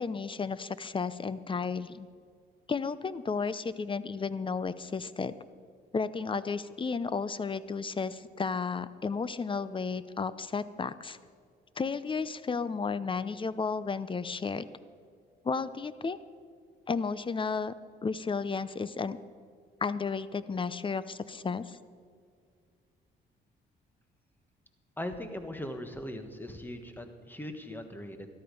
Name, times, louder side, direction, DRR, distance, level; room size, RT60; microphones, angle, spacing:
voice 1, 0.0-2.1 2.7-5.4 5.9-11.2 11.8-14.7 15.4-16.2 16.9-17.7 18.0-19.2 19.8-21.8, left 5 dB, 25° left, 16 dB, 0.6 m, -33 dB
voice 2, 25.0-28.3, left 1 dB, 10° left, 7 dB, 1.4 m, -39 dB
13.0 x 12.5 x 5.3 m, 2.1 s
cardioid pair, 90°, 20 cm